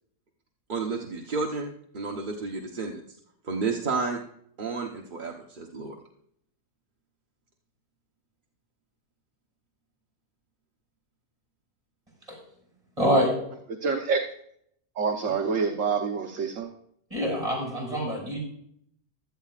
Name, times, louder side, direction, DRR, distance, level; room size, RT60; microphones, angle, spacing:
voice 1, 0.7-3.0 3.4-4.2 4.6-6.0, right 4 dB, 35° right, 0 dB, 1.1 m, -31 dB
voice 2, 13.0-13.3 17.1-18.4, equal, 20° right, -1 dB, 6.1 m, -25 dB
voice 3, 13.8-14.2 15.0-16.7, right 5 dB, 55° right, 3 dB, 1.3 m, -26 dB
16.0 x 13.0 x 2.4 m, 0.69 s
omnidirectional pair, 1.7 m